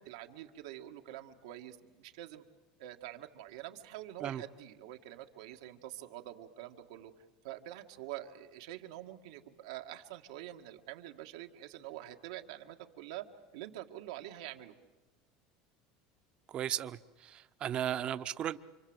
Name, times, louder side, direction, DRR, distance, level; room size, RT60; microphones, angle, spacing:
voice 1, 0.0-2.4 2.8-7.1 7.4-13.3 13.5-14.7, right 13 dB, 90° right, 1.9 m, -46 dB
voice 2, 16.5-18.6, right 10 dB, 35° right, 0.8 m, -36 dB
29.0 x 25.0 x 8.1 m
supercardioid pair, 140°, 3 cm